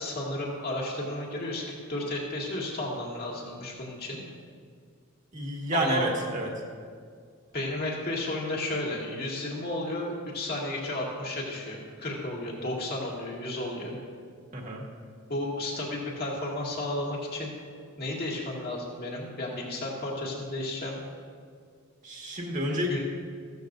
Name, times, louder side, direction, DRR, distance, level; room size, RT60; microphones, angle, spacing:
voice 1, 0.0-4.2 5.7-6.1 7.5-14.0 15.3-17.5 18.0-21.0 22.9-23.0, left 1 dB, 50° left, -3 dB, 2.2 m, -33 dB
voice 2, 5.3-6.5 14.5-14.9 22.0-23.0, right 1 dB, 35° right, -1 dB, 1.8 m, -29 dB
15.0 x 13.5 x 2.6 m, 2.1 s
head